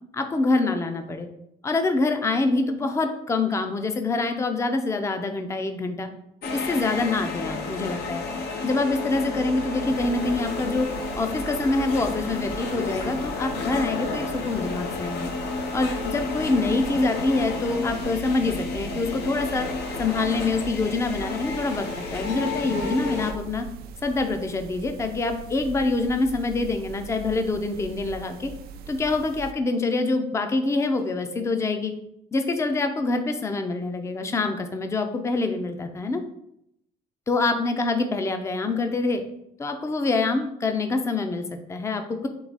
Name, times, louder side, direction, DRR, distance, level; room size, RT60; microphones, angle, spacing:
voice 1, 0.1-1.3 1.6-6.1 6.5-8.2 8.6-10.9 11.1-15.3 15.7-19.7 20.0-23.7 24.0-28.5 28.9-31.9 32.3-36.2 37.3-39.2 39.6-42.3, left 3 dB, 15° left, 6 dB, 0.5 m, -25 dB
sound 1, 6.4-23.3, left 3 dB, 75° left, 0.7 m, -31 dB
sound 2, 9.9-29.5, right 5 dB, 65° right, 0.4 m, -42 dB
4.7 x 2.8 x 4.0 m, 0.76 s
cardioid pair, 110°, 17 cm